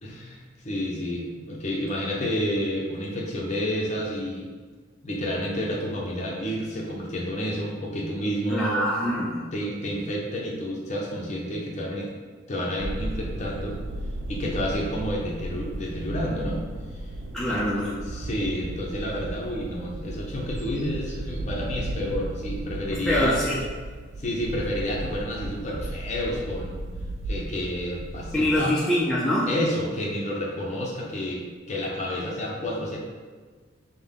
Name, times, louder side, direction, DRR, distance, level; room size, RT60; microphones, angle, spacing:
voice 1, 0.0-4.5 5.0-8.8 9.5-12.1 12.5-13.8 14.3-16.6 16.9-17.0 17.5-17.6 18.1-23.4 24.2-26.8 27.3-28.7 29.4-33.0, equal, 35° left, -3 dB, 0.7 m, -30 dB
voice 2, 8.5-9.4 17.3-18.2 22.9-23.6 28.3-29.5, equal, 5° left, -7 dB, 0.4 m, -24 dB
sound 1, 12.8-28.6, right 1 dB, 70° right, 0.4 m, -35 dB
5.4 x 2.1 x 3.6 m, 1.5 s
head